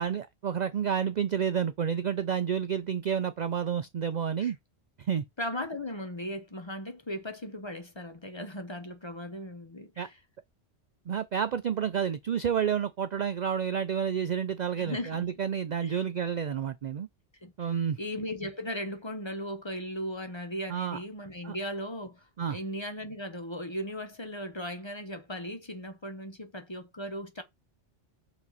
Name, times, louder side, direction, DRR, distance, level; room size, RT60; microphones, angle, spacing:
voice 1, 0.0-4.6 5.0-5.2 10.0-10.1 11.1-17.1 17.6-18.0 20.7-21.0 21.4-21.6 22.4-22.6, right 8 dB, 60° right, 0.5 m, -30 dB
voice 2, 5.4-10.1 14.7-15.3 15.8-16.0 17.4-17.5 18.0-27.4, equal, 25° left, 0.9 m, -37 dB
6.1 x 4.8 x 4.1 m
omnidirectional pair, 1.2 m